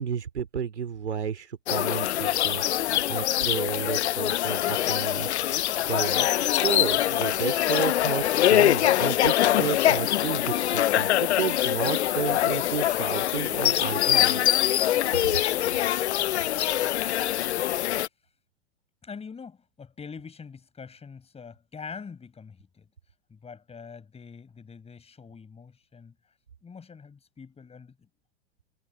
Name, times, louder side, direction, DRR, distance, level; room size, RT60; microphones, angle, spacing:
voice 1, 0.0-6.3 6.6-14.6, right 7 dB, 85° right, 3.0 m, -32 dB
sound 1, 1.7-18.1, left 13 dB, 80° left, 0.5 m, -24 dB
voice 2, 19.0-22.9 23.3-26.2 26.6-28.1, left 5 dB, 20° left, 7.6 m, -44 dB
hypercardioid pair, 100°, 33 cm